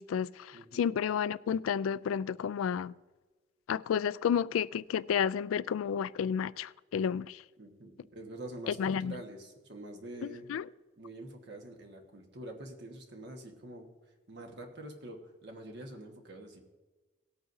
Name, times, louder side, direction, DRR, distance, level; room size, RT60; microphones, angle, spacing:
voice 1, 0.0-2.9 3.7-7.4 8.7-9.2 10.5-10.6, left 7 dB, 85° left, 0.3 m, -31 dB
voice 2, 0.5-1.0 7.6-10.5 11.0-13.9 14.3-16.6, right 1 dB, 55° right, 1.4 m, -46 dB
18.5 x 8.6 x 2.7 m
head